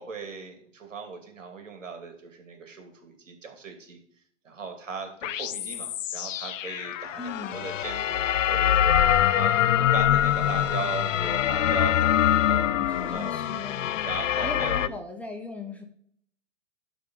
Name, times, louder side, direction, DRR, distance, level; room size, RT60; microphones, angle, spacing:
voice 1, 0.0-4.0 4.4-12.7 13.1-13.4 14.0-14.9, right 5 dB, 90° right, 4 dB, 2.6 m, -38 dB
sound 1, 5.2-14.9, left 11 dB, 85° left, 0.6 m, -24 dB
voice 2, 7.2-7.6 12.7-14.0 14.4-15.8, left 3 dB, 5° left, 3 dB, 0.9 m, -38 dB
11.5 x 3.8 x 5.5 m, 0.65 s
hypercardioid pair, 140°, 37 cm